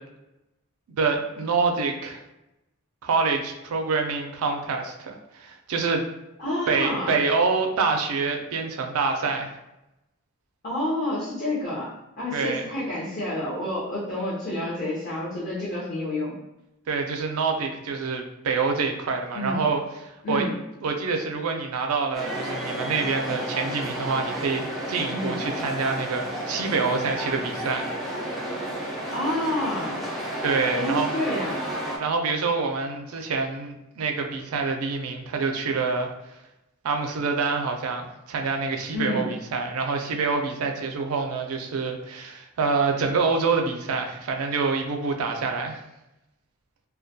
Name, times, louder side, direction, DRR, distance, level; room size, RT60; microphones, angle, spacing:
voice 1, 1.0-2.2 3.0-6.1 6.7-9.5 12.3-12.6 16.9-20.5 20.8-27.9 30.4-31.1 32.0-36.1 36.8-45.8, right 4 dB, 85° right, 4 dB, 0.4 m, -26 dB
voice 2, 6.4-7.2 10.6-16.3 19.3-19.6 20.2-20.5 25.1-25.4 29.1-30.0 30.7-31.6 38.9-39.3, left 1 dB, 40° left, -10 dB, 0.7 m, -29 dB
sound 1, 22.1-32.0, right 1 dB, ahead, 0.3 m, -32 dB
2.2 x 2.1 x 2.6 m, 0.92 s
head